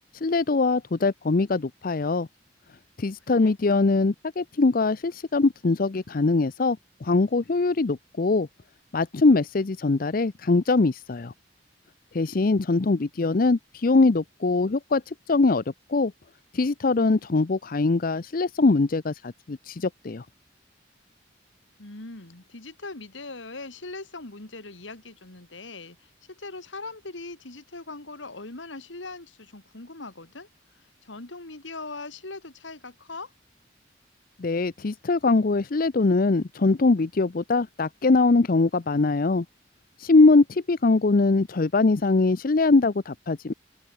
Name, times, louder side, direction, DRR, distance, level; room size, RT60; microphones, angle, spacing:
voice 1, 0.2-2.3 3.0-8.5 8.9-11.3 12.1-15.6 15.9-16.1 16.5-20.2 34.4-39.4 40.0-43.5, left 3 dB, 50° left, 0.6 m, -22 dB
voice 2, 21.8-30.5 30.7-33.3, left 3 dB, 90° left, 2.7 m, -40 dB
open air
head